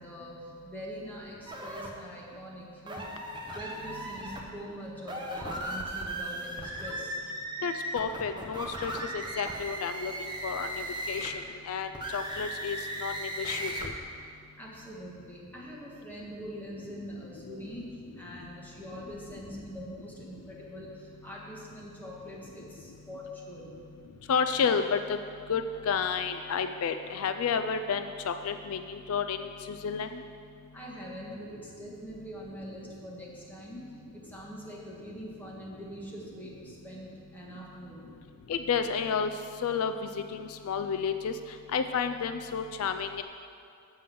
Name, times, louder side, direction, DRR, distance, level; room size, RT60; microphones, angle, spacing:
voice 1, 0.0-3.1 3.5-7.2 14.6-17.8 18.2-23.8 30.7-33.9 34.1-38.1, equal, 10° left, -5 dB, 1.6 m, -43 dB
sound 1, 1.5-1.9 2.9-4.4 5.0-11.4 11.9-13.9, right 1 dB, 20° right, 0.9 m, -37 dB
voice 2, 7.6-13.9 24.3-25.2 25.5-30.2 38.5-39.3 39.6-41.4 41.7-43.2, left 6 dB, 70° left, 8 dB, 0.4 m, -31 dB
7.6 x 5.5 x 7.5 m, 2.4 s
head